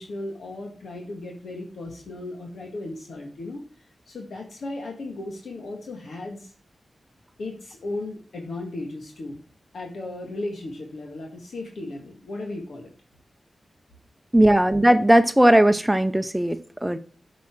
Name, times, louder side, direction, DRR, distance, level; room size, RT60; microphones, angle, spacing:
voice 1, 0.0-6.5 7.4-9.4 9.7-12.9, left 2 dB, 80° left, 1.9 m, -36 dB
voice 2, 14.3-17.0, right 1 dB, 10° right, 0.7 m, -18 dB
8.4 x 6.1 x 6.0 m
cardioid pair, 50°, 0 cm